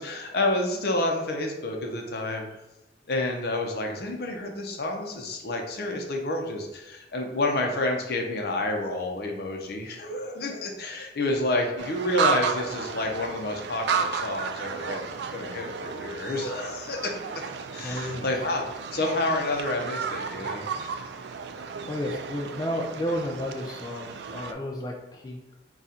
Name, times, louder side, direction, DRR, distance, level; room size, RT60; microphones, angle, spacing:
voice 1, 0.0-2.5 3.1-17.3 17.7-20.9, left 2 dB, 60° left, 2 dB, 0.7 m, -29 dB
sound 1, 11.8-24.5, right 6 dB, 70° right, 0.3 m, -33 dB
voice 2, 17.8-18.4 21.8-25.6, left 1 dB, 20° left, 0 dB, 0.4 m, -32 dB
3.8 x 2.4 x 4.2 m, 0.95 s
head